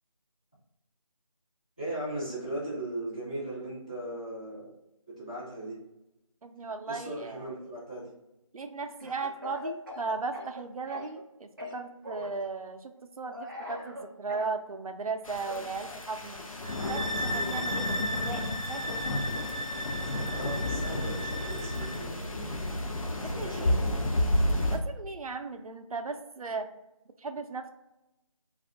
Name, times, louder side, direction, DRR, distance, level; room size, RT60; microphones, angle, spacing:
voice 1, 1.8-4.7 5.1-5.8 6.9-8.1 20.2-22.5 23.1-24.1, right 1 dB, 15° left, -10 dB, 0.5 m, -38 dB
voice 2, 6.4-7.5 8.5-16.4 16.9-18.8 23.2-23.7 24.7-26.7 27.2-27.7, right 4 dB, 90° right, 7 dB, 0.4 m, -37 dB
Speech / Cough, 9.0-11.3 11.6-12.4 13.3-14.5 15.4-17.8, left 2 dB, 35° right, 0.5 m, -42 dB
sound 1, 15.2-24.8, left 1 dB, 75° left, 0.6 m, -31 dB
sound 2, 16.6-22.0, equal, 55° left, 0.9 m, -36 dB
2.5 x 2.3 x 3.4 m, 0.92 s
figure-of-eight pair, 175°, 18 cm